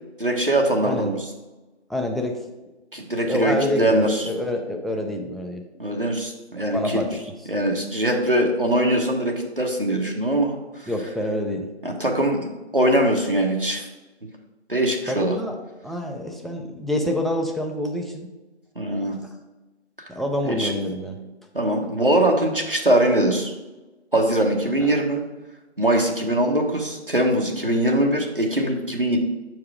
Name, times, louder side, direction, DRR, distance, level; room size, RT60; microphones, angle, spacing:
voice 1, 0.2-1.2 2.9-4.2 5.8-7.0 7.5-10.9 11.8-13.8 14.7-15.4 18.7-19.2 20.4-20.7 21.5-23.5 24.1-25.2 25.8-29.2, right 1 dB, 50° right, 1 dB, 1.1 m, -22 dB
voice 2, 1.9-2.4 3.2-5.6 6.7-7.1 10.9-11.7 15.1-15.6 15.8-18.3 20.1-21.2 24.8-24.9, left 1 dB, ahead, 2 dB, 0.4 m, -27 dB
6.3 x 4.7 x 4.8 m, 1.1 s
figure-of-eight pair, 175°, 35 cm